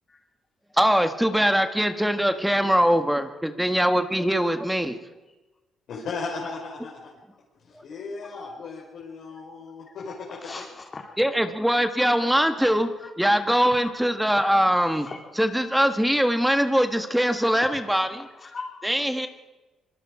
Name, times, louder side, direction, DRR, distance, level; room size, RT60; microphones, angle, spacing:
voice 1, 0.8-5.0 11.2-12.9 13.2-15.1 15.4-18.2 18.8-19.3, equal, 5° right, 7 dB, 1.5 m, -22 dB
voice 2, 5.9-7.1 7.6-10.5, left 4 dB, 70° left, -2 dB, 4.6 m, -36 dB
voice 3, 10.3-11.2 12.6-12.7 13.7-13.9 14.4-15.2 17.5-17.6 17.8-18.0 18.3-19.0, left 3 dB, 35° left, 0 dB, 3.2 m, -40 dB
24.5 x 22.0 x 4.9 m, 1.1 s
cardioid pair, 90°, 0 cm